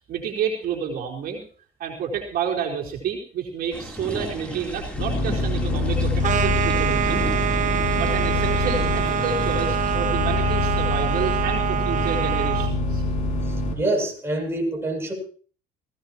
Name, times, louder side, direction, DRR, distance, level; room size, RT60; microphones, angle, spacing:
voice 1, 0.1-1.4 1.8-7.3 7.9-13.0, right 7 dB, 65° right, -2 dB, 4.2 m, -29 dB
sound 1, 3.7-10.0, equal, 5° left, 3.6 m, -34 dB
sound 2, 5.0-13.7, left 2 dB, 45° left, 5.4 m, -25 dB
sound 3, 6.2-12.7, right 10 dB, 50° right, 0.8 m, -25 dB
voice 2, 13.7-15.1, right 2 dB, 15° right, 0 dB, 7.3 m, -25 dB
19.5 x 16.5 x 3.0 m, 0.42 s
cardioid pair, 110°, 17 cm